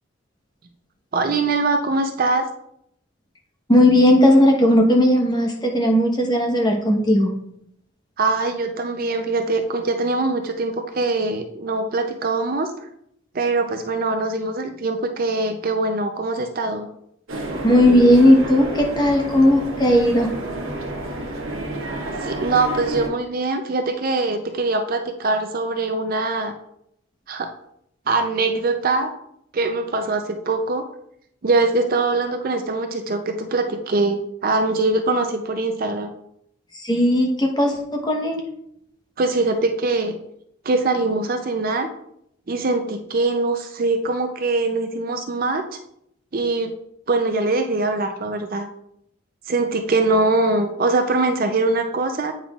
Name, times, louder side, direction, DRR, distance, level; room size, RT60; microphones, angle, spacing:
voice 1, 1.1-2.5 8.2-12.7 13.3-16.9 22.2-26.5 27.3-27.5 28.1-29.1 29.5-30.8 31.4-36.1 39.2-40.2 40.6-41.9 42.5-45.6 46.3-46.7 47.1-48.7 49.5-52.3, right 3 dB, 45° right, 5 dB, 0.5 m, -22 dB
voice 2, 3.7-7.3 17.6-20.3 36.7-38.4, left 1 dB, 20° left, 1 dB, 1.0 m, -16 dB
sound 1, 17.3-23.1, right 1 dB, 80° right, 1.3 m, -30 dB
8.6 x 5.6 x 2.4 m, 0.74 s
head